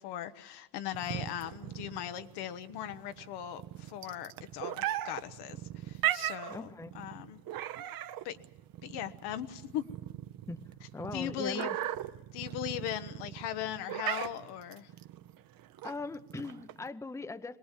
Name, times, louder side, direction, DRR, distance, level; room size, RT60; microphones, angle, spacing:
voice 1, 0.0-6.7 6.9-7.4 8.2-8.4 8.8-9.9 11.1-11.7 12.3-14.9, left 10 dB, 80° left, 10 dB, 1.0 m, -39 dB
sound 1, 0.9-16.9, right 13 dB, 60° right, 0.9 m, -38 dB
voice 2, 6.5-7.0 10.5-10.6 10.9-11.8 15.8-17.6, left 3 dB, 5° left, 12 dB, 0.6 m, -40 dB
22.5 x 18.5 x 7.4 m, 0.97 s
cardioid pair, 105°, 40 cm